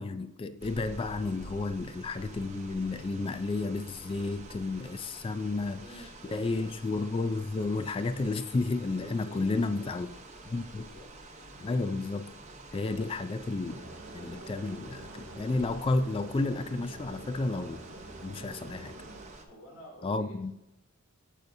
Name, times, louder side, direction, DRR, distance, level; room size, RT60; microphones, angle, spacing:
voice 1, 0.0-5.8 6.3-10.1 10.5-10.9 11.6-12.3 12.7-13.8 14.1-17.8 18.2-19.0 20.0-20.5, left 3 dB, 25° left, 0.3 m, -32 dB
sound 1, 0.6-19.5, right 2 dB, 35° right, 0.9 m, -49 dB
voice 2, 5.1-6.7 9.2-10.1 10.3-11.1 13.0-13.3 19.4-20.5, equal, 85° left, 2.3 m, -51 dB
sound 2, 13.7-19.3, right 2 dB, 75° right, 0.9 m, -47 dB
8.5 x 6.6 x 2.7 m
head